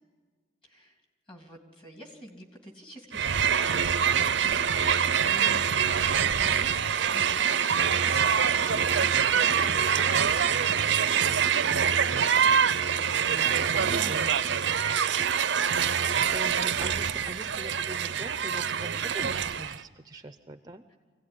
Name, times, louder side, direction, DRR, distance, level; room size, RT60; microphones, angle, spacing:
voice 1, 0.6-1.0 1.3-4.3 4.6-13.4 13.8-15.3, equal, 25° left, 2 dB, 2.9 m, -47 dB
Crowd, 3.1-19.8, right 7 dB, 75° right, 0.6 m, -25 dB
voice 2, 4.3-4.7 8.6-8.8 10.0-10.2 13.3-13.8 14.0-14.3 16.3-20.8, right 1 dB, 20° right, 8 dB, 0.6 m, -42 dB
24.0 x 17.0 x 9.9 m, 1.5 s
head